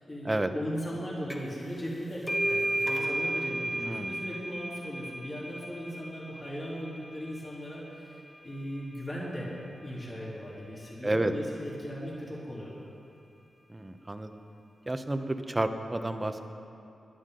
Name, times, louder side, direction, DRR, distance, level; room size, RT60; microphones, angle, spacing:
voice 1, 0.0-9.5 9.8-12.9, equal, 35° left, -7 dB, 3.5 m, -38 dB
sound 1, 1.3-1.6 1.9-9.2, right 1 dB, 10° left, 1.4 m, -34 dB
voice 2, 3.8-4.1 11.0-11.3 13.7-14.3 14.9-16.4, right 1 dB, 20° right, 7 dB, 0.8 m, -30 dB
19.5 x 11.0 x 3.9 m, 2.6 s
cardioid pair, 75°, 0 cm